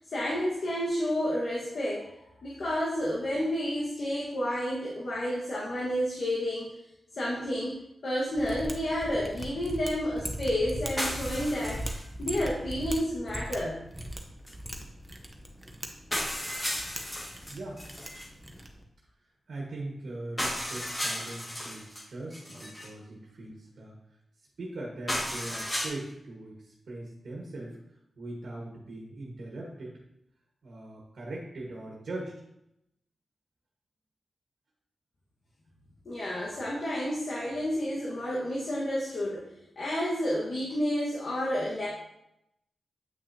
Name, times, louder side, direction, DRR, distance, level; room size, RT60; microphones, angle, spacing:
voice 1, 0.1-2.1 2.4-6.7 7.2-11.8 12.2-13.8 36.0-39.5 39.8-41.9, equal, 70° left, -6 dB, 1.5 m, -30 dB
Mechanisms, 8.3-18.8, right 1 dB, 15° right, 1.0 m, -40 dB
sound 1, 11.0-12.1 12.3-12.4 14.5-14.6 15.5-15.6 16.1-18.3 20.4-22.0 22.3-22.9 25.1-25.9, equal, 25° left, 2.0 m, -34 dB
voice 2, 17.5-17.8 19.5-24.0 24.6-27.8 28.2-30.0 30.6-32.4, right 2 dB, 75° right, -2 dB, 1.5 m, -40 dB
8.8 x 5.8 x 2.9 m, 0.83 s
cardioid pair, 65°, 0 cm